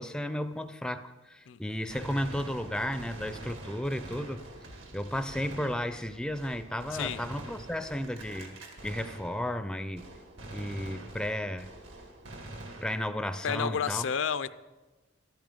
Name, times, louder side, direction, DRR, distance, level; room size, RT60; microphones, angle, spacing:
voice 1, 0.0-4.4 4.9-8.5 8.8-10.1 10.5-11.7 12.8-14.1, left 1 dB, 5° left, 11 dB, 0.4 m, -33 dB
Gunshot gunfire, 1.9-9.7 10.0-13.3, right 1 dB, 75° right, 1.9 m, -45 dB
voice 2, 13.4-14.5, left 7 dB, 65° left, 14 dB, 0.4 m, -30 dB
12.5 x 12.5 x 5.2 m, 1.2 s
head